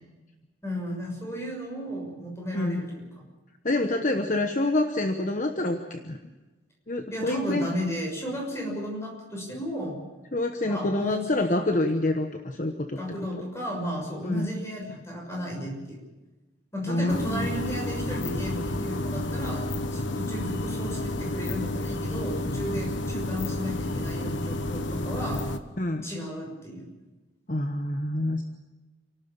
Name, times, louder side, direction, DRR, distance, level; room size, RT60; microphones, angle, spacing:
voice 1, 0.6-3.0 7.1-10.0 10.7-11.3 13.0-16.0 16.7-25.5 26.0-26.9, equal, 15° left, -1 dB, 6.5 m, -34 dB
voice 2, 3.6-6.2 6.9-7.7 10.3-13.0 14.2-14.5 16.9-17.5 25.8-26.1 27.5-28.4, left 2 dB, 40° left, 6 dB, 1.1 m, -27 dB
sound 1, 17.1-25.6, left 1 dB, 70° left, 1.3 m, -31 dB
28.5 x 12.5 x 8.8 m, 1.1 s
head